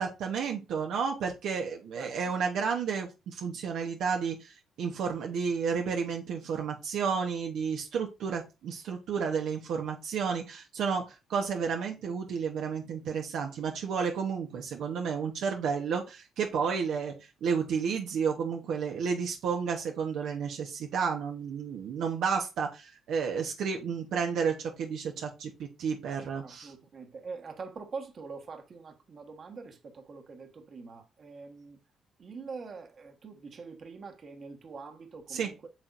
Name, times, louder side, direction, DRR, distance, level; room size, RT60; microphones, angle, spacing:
voice 1, 0.0-26.7 35.3-35.5, right 6 dB, 80° right, 1.1 m, -31 dB
voice 2, 2.0-2.3 26.4-31.8 32.2-35.7, right 4 dB, 50° right, 1.4 m, -44 dB
8.7 x 5.9 x 2.6 m
cardioid pair, 90°, 0 cm